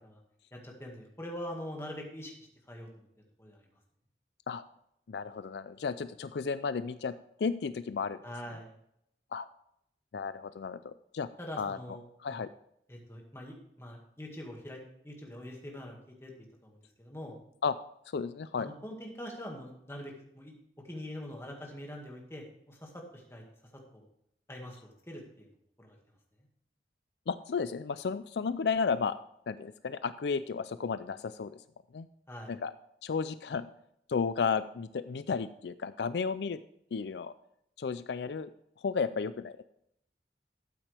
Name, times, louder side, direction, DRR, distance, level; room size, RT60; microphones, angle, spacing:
voice 1, 0.5-3.1 3.4-3.6 8.2-8.7 11.4-12.0 12.9-16.3 16.6-17.3 18.6-20.5 20.8-23.4 23.9-24.1 24.5-25.5 25.8-26.0 32.3-32.5, equal, 15° left, 0 dB, 2.0 m, -44 dB
voice 2, 5.1-8.2 9.3-9.5 10.1-11.3 11.6-11.8 12.2-12.5 17.6-17.7 18.1-18.7 27.3-29.2 29.5-31.6 31.9-32.1 32.5-32.7 33.0-33.7 34.1-36.6 36.9-37.3 37.8-38.5 38.8-39.6, left 5 dB, 75° left, 13 dB, 0.4 m, -33 dB
12.5 x 8.8 x 3.4 m, 0.75 s
head